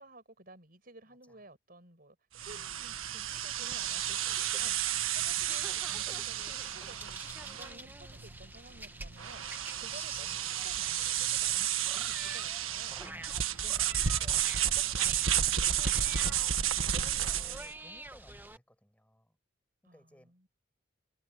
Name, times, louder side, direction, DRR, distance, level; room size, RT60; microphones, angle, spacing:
voice 1, 0.0-13.0 16.2-16.6 19.8-20.5, right 2 dB, 45° right, 6.0 m, -55 dB
sound 1, 2.3-17.7, right 10 dB, 80° right, 1.6 m, -32 dB
voice 2, 2.5-2.8 6.7-7.3 12.4-16.2 16.9-19.4 19.9-20.3, equal, 5° left, 6.9 m, -60 dB
sound 2, 3.7-18.6, right 2 dB, 10° right, 1.2 m, -48 dB
head